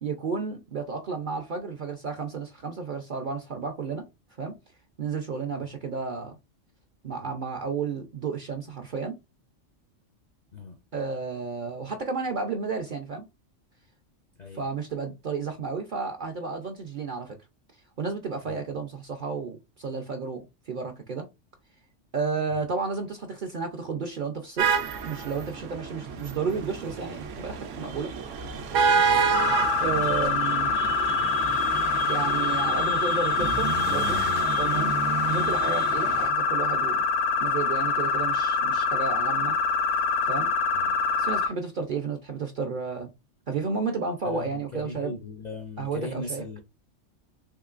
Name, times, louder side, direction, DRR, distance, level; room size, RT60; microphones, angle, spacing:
voice 1, 0.0-4.0 4.4-4.5 5.0-6.4 7.0-9.1 10.9-13.2 14.5-17.4 18.0-21.3 22.1-24.7 25.0-28.1 28.4-28.6 29.8-30.8 32.1-34.2 34.6-35.0 35.3-37.0 37.4-39.6 40.2-40.5 41.2-43.1 43.5-45.2 45.8-46.4, right 5 dB, 55° right, 0.5 m, -32 dB
sound 1, 24.6-36.3, right 5 dB, 75° right, 0.9 m, -29 dB
sound 2, 29.3-41.5, left 5 dB, 70° left, 1.0 m, -25 dB
voice 2, 44.2-46.6, left 3 dB, 50° left, 0.5 m, -38 dB
3.6 x 3.0 x 2.4 m
omnidirectional pair, 1.3 m